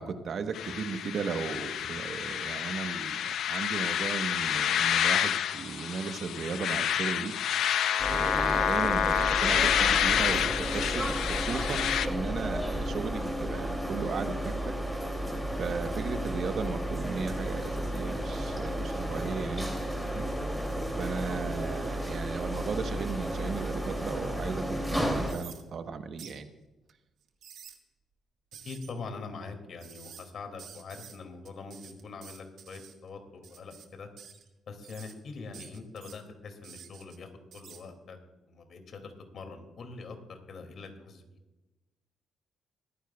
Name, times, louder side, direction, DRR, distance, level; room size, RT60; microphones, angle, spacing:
voice 1, 0.0-7.3 8.1-14.7 15.5-19.8 20.1-20.3 21.0-26.5, right 5 dB, 55° right, 8 dB, 1.1 m, -36 dB
sound 1, 0.5-12.1, left 9 dB, 75° left, 0.6 m, -28 dB
sound 2, 8.0-25.3, equal, ahead, 2.8 m, -33 dB
sound 3, 25.2-25.6 26.2-26.4 27.2-27.8 28.5-28.9 29.8-30.3 30.6-31.2 31.5-32.9 33.4-33.9 34.2-34.5 34.8-35.1 35.5-36.2 36.6-37.2 37.5-37.8, right 8 dB, 75° right, 1.5 m, -50 dB
voice 2, 28.6-34.1 34.7-38.2 38.5-41.4, left 4 dB, 60° left, 5 dB, 2.5 m, -43 dB
24.0 x 10.0 x 2.4 m, 1.1 s
cardioid pair, 90°, 0 cm